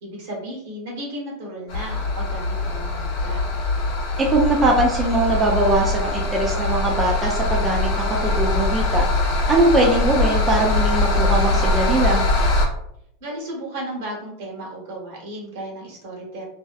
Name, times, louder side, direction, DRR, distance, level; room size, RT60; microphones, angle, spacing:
voice 1, 0.0-3.4 13.2-16.4, right 1 dB, 70° right, -2 dB, 1.1 m, -34 dB
sound 1, 1.7-12.7, left 2 dB, 55° left, 0.7 m, -22 dB
voice 2, 4.3-9.1 9.5-12.2, right 2 dB, 20° right, -2 dB, 0.5 m, -21 dB
2.7 x 2.1 x 2.4 m, 0.74 s
hypercardioid pair, 110°, 0 cm